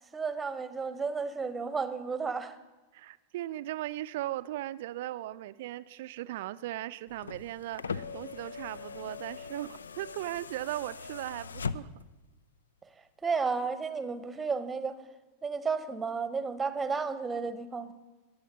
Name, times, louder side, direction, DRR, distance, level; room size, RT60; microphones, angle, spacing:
voice 1, 0.1-2.6 13.2-15.0 15.4-17.9, right 5 dB, 15° right, 13 dB, 1.0 m, -32 dB
voice 2, 2.9-11.9, right 15 dB, 55° right, 15 dB, 0.5 m, -38 dB
sound 1, 7.1-12.2 13.4-13.5, left 5 dB, 70° left, 0.4 m, -40 dB
21.0 x 7.2 x 5.4 m, 1.2 s
figure-of-eight pair, 90°, 0 cm